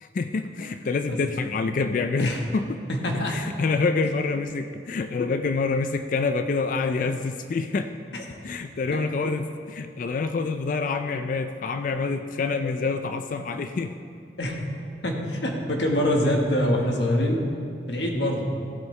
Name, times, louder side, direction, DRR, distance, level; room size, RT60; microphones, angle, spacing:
voice 1, 0.0-2.8 3.3-7.9 8.4-14.0, left 4 dB, 45° left, 8 dB, 0.3 m, -27 dB
voice 2, 2.9-3.4 8.1-8.2 8.9-9.0 14.4-14.6 15.0-17.5 17.9-18.5, left 1 dB, 75° left, 1 dB, 1.4 m, -24 dB
15.0 x 8.3 x 3.2 m, 2.4 s
head